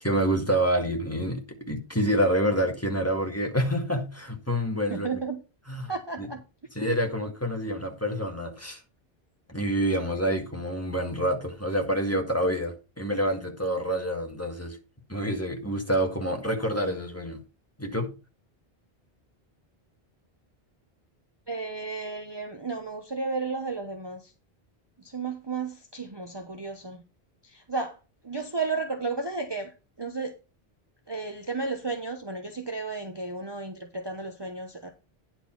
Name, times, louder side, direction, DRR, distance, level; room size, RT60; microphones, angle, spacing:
voice 1, 0.0-5.1 5.7-5.9 6.2-6.3 6.8-8.8 9.5-14.8 15.1-17.4 17.8-18.1, equal, 15° left, 1.7 m, -27 dB
voice 2, 4.9-5.4 5.9-6.4 21.5-24.3 25.0-27.0 27.4-28.0 28.2-30.3 31.1-34.9, right 4 dB, 25° right, 0.9 m, -33 dB
10.0 x 4.5 x 5.8 m
omnidirectional pair, 1.0 m